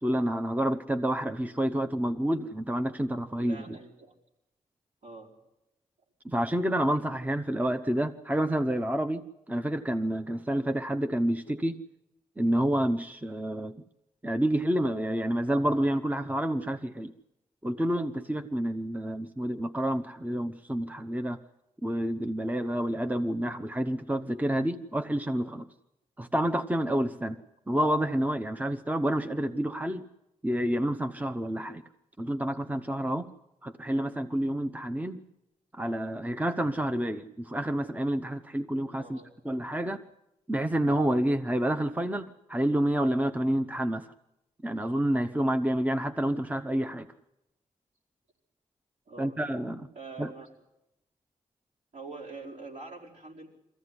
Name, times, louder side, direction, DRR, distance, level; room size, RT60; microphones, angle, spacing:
voice 1, 0.0-3.8 6.2-9.2 9.5-11.8 12.4-13.8 14.2-17.1 17.6-21.4 21.8-25.7 26.2-27.4 27.7-30.1 30.4-31.8 32.2-33.3 33.6-35.2 35.7-39.2 39.4-40.0 40.5-44.1 44.6-47.1 49.2-49.9 50.2-50.3, right 1 dB, 10° right, 8 dB, 0.9 m, -29 dB
voice 2, 3.4-4.1 5.0-5.3 39.0-39.3 49.1-49.4 49.9-50.5 51.9-53.5, right 3 dB, 70° right, -4 dB, 5.1 m, -44 dB
22.0 x 15.0 x 9.8 m, 0.89 s
cardioid pair, 50°, 13 cm